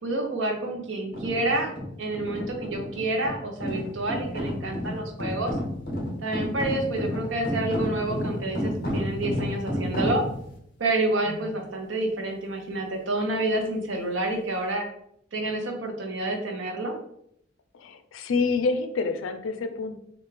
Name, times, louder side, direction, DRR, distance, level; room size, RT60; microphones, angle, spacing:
voice 1, 0.0-1.7 2.0-5.6 6.2-10.2 10.8-14.8 15.3-16.9, right 2 dB, 75° right, 2 dB, 0.8 m, -28 dB
sound 1, 1.1-10.6, left 1 dB, 50° left, 0.8 m, -31 dB
voice 2, 17.7-20.0, left 4 dB, 90° left, 8 dB, 0.4 m, -28 dB
3.5 x 2.4 x 3.2 m, 0.72 s
head